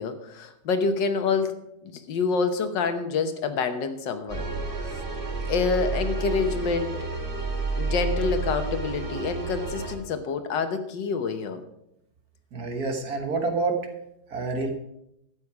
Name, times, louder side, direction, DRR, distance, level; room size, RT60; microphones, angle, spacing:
voice 1, 0.0-1.5 1.8-4.5 4.8-5.0 5.5-6.9 7.8-11.6, left 5 dB, 75° left, 8 dB, 1.7 m, -27 dB
sound 1, 4.3-9.9, right 3 dB, 30° right, 1.6 m, -30 dB
voice 2, 12.5-13.8 14.3-14.7, right 3 dB, 55° right, 4 dB, 1.8 m, -27 dB
12.0 x 8.4 x 4.8 m, 0.81 s
omnidirectional pair, 2.0 m